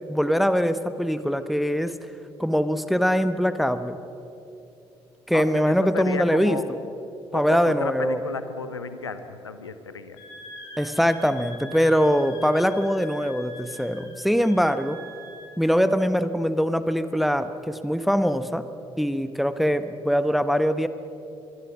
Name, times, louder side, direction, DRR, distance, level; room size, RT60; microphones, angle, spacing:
voice 1, 0.1-1.9 2.4-4.0 5.3-6.8 7.3-8.2 10.8-15.0 15.6-18.7 19.0-20.9, equal, ahead, 12 dB, 1.1 m, -22 dB
voice 2, 5.3-6.6 7.3-10.2, left 5 dB, 85° left, 11 dB, 1.0 m, -33 dB
Wind instrument woodwind instrument, 10.2-15.5, left 1 dB, 70° left, 5.0 m, -43 dB
25.5 x 23.0 x 6.1 m, 2.8 s
figure-of-eight pair, 45°, 14 cm